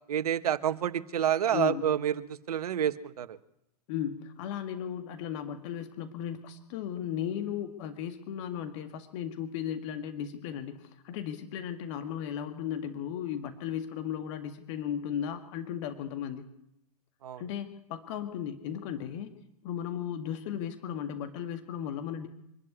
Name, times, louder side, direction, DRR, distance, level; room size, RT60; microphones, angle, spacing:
voice 1, 0.1-3.4 17.2-17.4, right 10 dB, 70° right, 14 dB, 1.3 m, -29 dB
voice 2, 1.5-1.9 3.9-16.4 17.4-19.3 19.6-22.3, left 9 dB, 50° left, 7 dB, 2.0 m, -36 dB
24.5 x 12.0 x 9.7 m, 0.81 s
hypercardioid pair, 105°, 20 cm